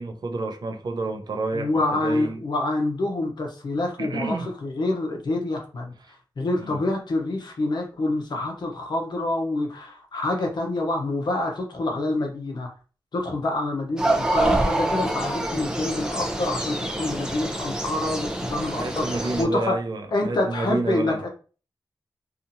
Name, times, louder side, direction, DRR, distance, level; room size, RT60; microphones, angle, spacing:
voice 1, 0.0-1.7 2.0-2.4 4.0-4.5 6.0-6.1 6.6-6.8 18.5-21.3, right 2 dB, 60° right, 0.5 m, -29 dB
voice 2, 1.5-5.9 6.4-12.7 13.1-19.7 20.1-21.3, left 2 dB, 70° left, 0.7 m, -27 dB
sound 1, 14.0-19.4, right 1 dB, 10° right, 0.5 m, -26 dB
2.7 x 2.4 x 2.6 m
wide cardioid pair, 90°, 8 cm